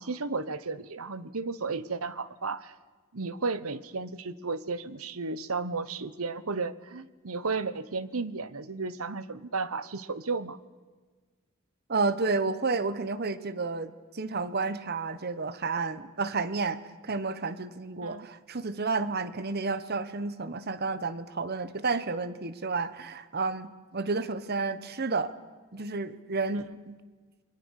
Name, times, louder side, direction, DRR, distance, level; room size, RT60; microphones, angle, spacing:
voice 1, 0.0-2.7 3.1-10.6 18.0-18.3, right 4 dB, 80° right, 16 dB, 1.1 m, -33 dB
voice 2, 11.9-25.3 25.7-27.0, right 4 dB, 50° right, 14 dB, 1.2 m, -31 dB
29.0 x 22.5 x 6.5 m, 1.4 s
head